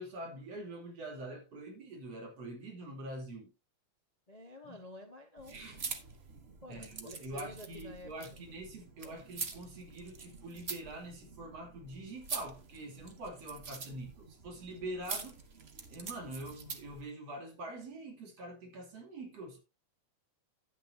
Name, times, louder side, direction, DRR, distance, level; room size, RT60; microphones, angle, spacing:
voice 1, 0.0-3.5 4.6-4.8 5.5-5.9 6.7-15.5 15.9-19.6, right 1 dB, 60° right, 3.9 m, -45 dB
voice 2, 4.3-5.6 6.6-8.1 9.0-9.2, left 1 dB, 75° left, 0.3 m, -50 dB
Hyacinthe remove place elastic beaded bracelet edited, 5.4-17.0, right 5 dB, 80° right, 0.5 m, -45 dB
11.5 x 9.4 x 2.8 m
omnidirectional pair, 3.4 m